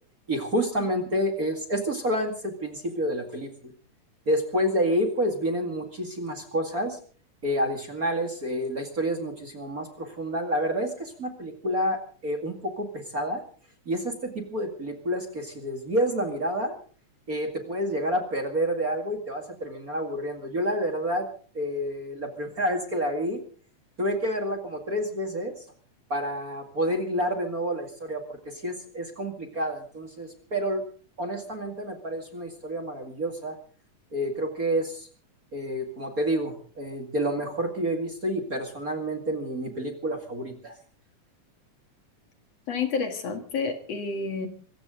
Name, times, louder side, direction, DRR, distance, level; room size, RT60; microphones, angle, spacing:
voice 1, 0.3-3.7 4.3-7.0 7.4-13.4 13.9-16.8 17.3-21.3 21.5-23.4 24.0-25.5 26.1-30.8 31.2-33.6 34.1-35.1 35.5-40.7, equal, 30° right, 4 dB, 2.3 m, -29 dB
voice 2, 42.7-44.5, left 5 dB, 55° left, 6 dB, 2.8 m, -29 dB
25.5 x 15.0 x 3.8 m, 0.43 s
omnidirectional pair, 3.5 m